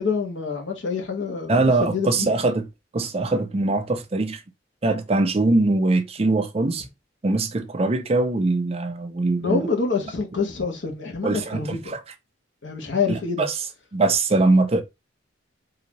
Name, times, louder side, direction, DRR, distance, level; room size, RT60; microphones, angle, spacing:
voice 1, 0.0-1.5 1.8-2.3 9.4-11.9 12.6-13.5, left 4 dB, 80° left, 1.2 m, -26 dB
voice 2, 1.5-2.7 2.9-4.4 4.8-6.9 7.2-9.7 11.2-12.0 13.1-13.5 13.9-14.8, right 2 dB, 30° right, 0.5 m, -22 dB
3.9 x 2.7 x 3.0 m
head